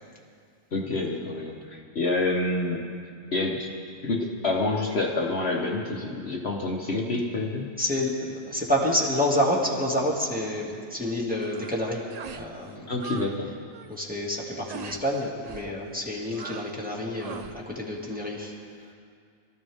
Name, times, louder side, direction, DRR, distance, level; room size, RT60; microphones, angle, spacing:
voice 1, 0.7-2.8 3.3-3.7 4.0-7.7 12.9-13.5, left 2 dB, 50° left, -1 dB, 1.3 m, -27 dB
voice 2, 7.8-12.9 13.9-18.5, left 1 dB, 5° right, -4 dB, 2.1 m, -28 dB
sound 1, 11.4-11.8 12.1-12.5 12.8-13.3 13.6-14.0 14.7-15.0 15.4-15.7 16.3-16.8 17.2-17.6, right 6 dB, 70° right, 0.4 m, -41 dB
22.5 x 14.0 x 3.6 m, 2.2 s
omnidirectional pair, 1.4 m